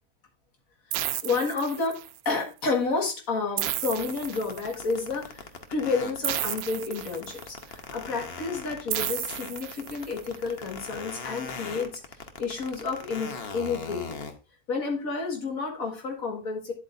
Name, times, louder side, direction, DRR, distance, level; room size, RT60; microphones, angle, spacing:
sound 1, 0.9-2.3 3.6-4.9 6.2-7.6 8.9-10.3, right 12 dB, 85° right, 1.1 m, -33 dB
voice 1, 1.2-2.0 2.3-12.0 12.4-14.2 14.7-16.7, left 4 dB, 70° left, 2 dB, 2.2 m, -30 dB
sound 2, 3.8-14.3, left 5 dB, 45° left, 1.1 m, -39 dB
9.9 x 7.9 x 2.6 m, 0.32 s
omnidirectional pair, 1.5 m